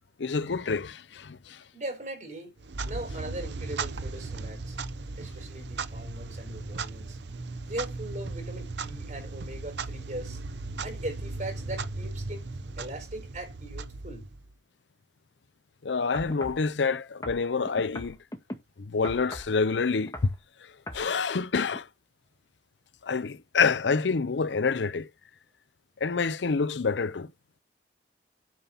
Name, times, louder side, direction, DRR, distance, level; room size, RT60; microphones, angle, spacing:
voice 1, 0.2-1.6 15.8-18.2 18.8-20.1 20.9-21.9 23.0-25.1 26.0-27.3, left 5 dB, 90° left, 0.6 m, -27 dB
voice 2, 1.7-2.6 2.8-4.8 5.2-7.2 7.7-10.4 10.8-12.5 12.8-14.3, right 1 dB, 45° right, 4.9 m, -39 dB
Clock, 2.6-14.5, right 3 dB, 80° right, 0.8 m, -37 dB
sound 1, 16.1-16.6 17.2-18.6 19.0-19.6 20.0-20.4 20.9-21.1 21.7-21.8, left 1 dB, 20° left, 1.7 m, -39 dB
9.3 x 5.5 x 5.6 m
head